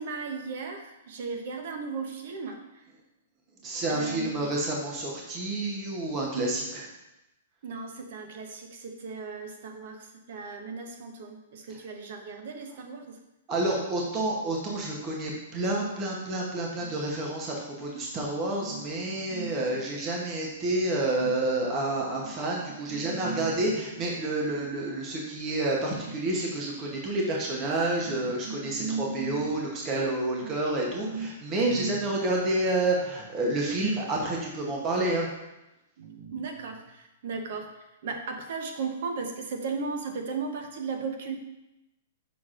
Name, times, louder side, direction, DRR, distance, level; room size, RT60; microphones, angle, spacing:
voice 1, 0.0-2.6 3.9-4.5 7.6-13.2 16.8-16.9 18.6-19.8 21.2-21.3 22.2-22.3 22.9-23.5 28.1-29.5 30.4-30.6 31.0-32.2 36.0-41.4, right 4 dB, 50° right, 5 dB, 0.8 m, -36 dB
voice 2, 3.6-6.9 11.7-11.8 13.5-35.3, right 2 dB, 20° right, -2 dB, 0.8 m, -29 dB
6.4 x 5.9 x 2.5 m, 0.94 s
hypercardioid pair, 175°, 0 cm